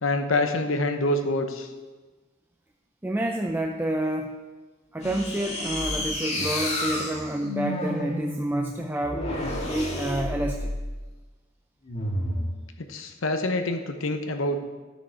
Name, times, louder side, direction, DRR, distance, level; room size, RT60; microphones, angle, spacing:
voice 1, 0.0-1.7 12.9-14.6, left 2 dB, 75° left, 6 dB, 0.8 m, -26 dB
voice 2, 3.0-4.4 4.9-9.3 9.6-10.7, right 1 dB, 10° right, 3 dB, 0.5 m, -29 dB
sound 1, 5.0-10.9 11.8-12.5, left 1 dB, 35° left, 1.8 m, -30 dB
12.5 x 6.4 x 4.5 m, 1.3 s
head